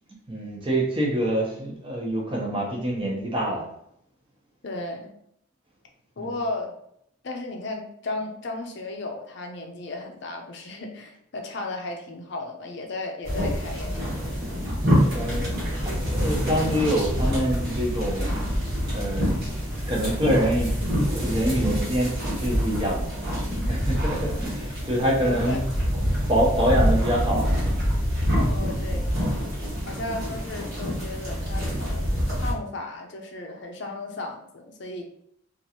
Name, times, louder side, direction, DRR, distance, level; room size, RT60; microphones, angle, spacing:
voice 1, 0.3-3.6 6.2-6.4 14.4-14.6 15.1-18.3 18.9-19.5 19.8-23.1 23.6-25.6 26.3-27.5 29.9-30.2, equal, 25° right, -3 dB, 0.8 m, -26 dB
voice 2, 4.6-5.1 6.2-6.7 7.2-14.5 23.6-23.8 25.2-25.8 28.4-29.1 29.8-32.0 32.4-35.0, left 2 dB, 55° left, 3 dB, 0.5 m, -35 dB
sound 1, 13.2-32.5, equal, 50° right, 1.3 m, -26 dB
3.0 x 2.5 x 2.8 m, 0.72 s
head